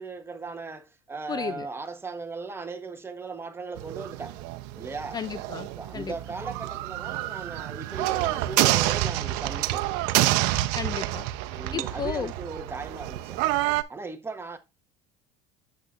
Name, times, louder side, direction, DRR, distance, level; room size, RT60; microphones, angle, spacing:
voice 1, 0.0-4.4 4.8-5.2 5.8-9.9 11.5-13.6 13.9-14.6, right 4 dB, 15° right, 1.0 m, -37 dB
voice 2, 1.3-1.7 5.1-5.7 5.9-6.1 10.7-11.3 11.7-12.3, left 7 dB, 20° left, 0.4 m, -33 dB
sound 1, 3.8-13.8, right 16 dB, 75° right, 0.7 m, -28 dB
8.3 x 6.9 x 2.5 m
cardioid pair, 135°, 18 cm